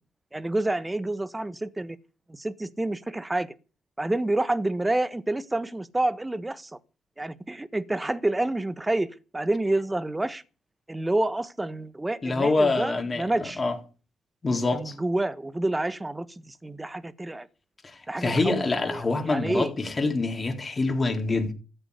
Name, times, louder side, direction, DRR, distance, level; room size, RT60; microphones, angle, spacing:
voice 1, 0.3-2.0 2.3-3.5 4.0-6.7 7.2-10.4 10.9-13.6 14.7-17.5 18.1-18.6 18.9-19.7, right 2 dB, 15° right, 1.5 m, -28 dB
voice 2, 12.2-13.3 13.6-13.8 14.4-14.9 17.8-21.5, left 3 dB, 30° left, 4.0 m, -25 dB
14.5 x 8.8 x 8.3 m
hypercardioid pair, 55°, 0 cm